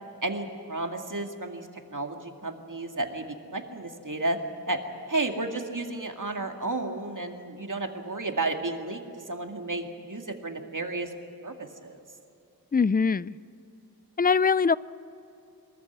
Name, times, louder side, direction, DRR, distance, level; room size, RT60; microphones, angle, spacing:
voice 1, 0.2-3.3 3.5-4.4 4.7-4.8 5.1-11.1 11.4-12.0, right 2 dB, 55° right, 4 dB, 2.2 m, -32 dB
voice 2, 12.7-13.4 14.2-14.7, left 5 dB, 25° left, 19 dB, 0.4 m, -22 dB
23.5 x 14.0 x 9.6 m, 2.8 s
wide cardioid pair, 50°, 37 cm